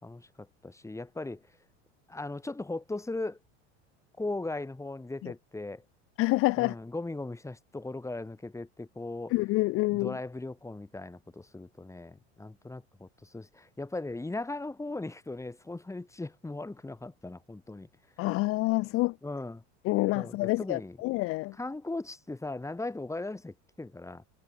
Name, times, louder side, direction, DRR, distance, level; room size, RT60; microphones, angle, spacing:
voice 1, 0.0-1.4 2.1-3.4 4.2-5.8 6.6-9.3 9.9-17.9 19.2-19.6 20.1-21.0 21.6-24.2, left 2 dB, 10° left, 3.5 m, -38 dB
voice 2, 6.2-6.8 9.3-10.2 18.2-19.1 19.8-21.5, left 21 dB, 40° left, 0.5 m, -27 dB
hypercardioid pair, 100°, 34 cm